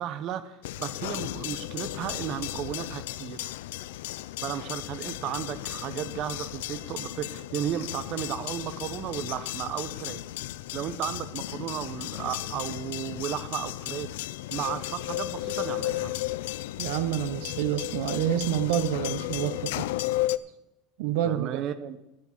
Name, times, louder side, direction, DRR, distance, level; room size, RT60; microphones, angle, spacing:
voice 1, 0.0-3.5 4.4-10.2 10.7-14.2 14.5-16.1 21.2-22.0, right 10 dB, 45° right, 13 dB, 0.8 m, -34 dB
sound 1, 0.6-20.4, left 16 dB, 90° left, 0.4 m, -34 dB
voice 2, 16.8-19.9 21.0-21.6, right 11 dB, 70° right, 12 dB, 0.6 m, -28 dB
13.5 x 6.1 x 7.1 m, 0.89 s
supercardioid pair, 155°, 0 cm